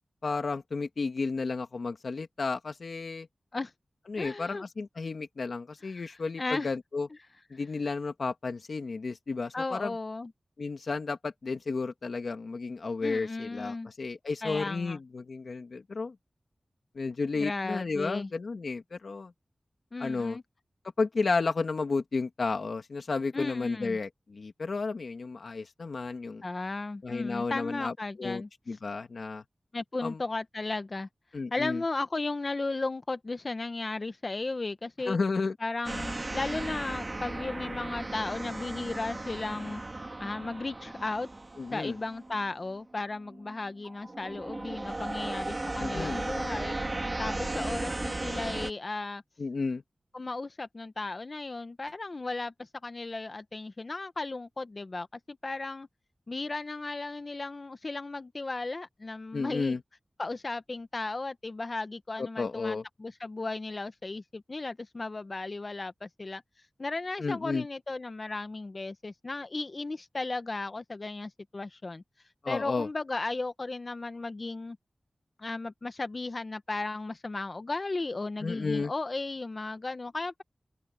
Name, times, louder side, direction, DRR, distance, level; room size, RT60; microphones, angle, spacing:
voice 1, 0.2-3.3 4.1-7.1 7.5-9.9 10.6-16.2 16.9-19.3 20.0-20.4 21.0-26.4 27.0-29.4 30.0-30.2 31.3-31.8 35.1-35.5 41.6-42.0 45.8-46.2 49.4-49.8 59.3-59.8 62.2-62.8 67.2-67.7 72.4-72.9 78.4-78.9, left 4 dB, 80° left, 1.9 m, -32 dB
voice 2, 4.2-4.6 5.9-6.0 6.4-6.7 9.5-10.3 13.0-13.9 14.4-15.0 17.3-18.3 19.9-20.4 23.3-24.0 26.4-28.5 29.7-31.1 31.5-35.2 35.6-39.8 40.2-41.3 41.7-46.8 47.2-49.2 50.1-52.5 52.8-55.9 56.3-59.7 60.2-66.4 66.8-72.0 72.5-74.8 75.4-80.4, left 3 dB, 50° left, 1.3 m, -35 dB
sound 1, 35.8-42.8 43.3-43.5 43.8-48.7, right 2 dB, 40° right, 4.0 m, -36 dB
open air
cardioid pair, 50°, 0 cm